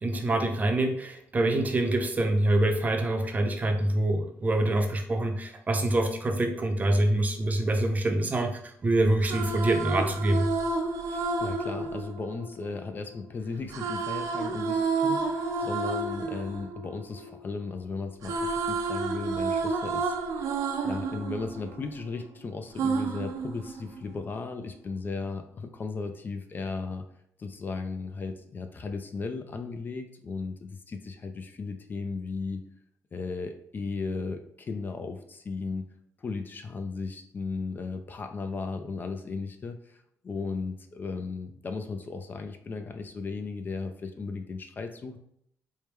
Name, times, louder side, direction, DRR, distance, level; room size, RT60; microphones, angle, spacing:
voice 1, 0.0-10.5, right 1 dB, 30° right, 4 dB, 0.6 m, -25 dB
sound 1, 9.0-13.1 13.7-17.8 18.0-22.3 22.8-24.2, right 4 dB, 75° right, 0.5 m, -31 dB
voice 2, 11.1-20.4 20.8-27.1 27.4-32.6 33.1-35.9 36.2-45.2, left 4 dB, 35° left, 7 dB, 0.4 m, -36 dB
4.5 x 2.2 x 3.3 m, 0.71 s
cardioid pair, 115°, 6 cm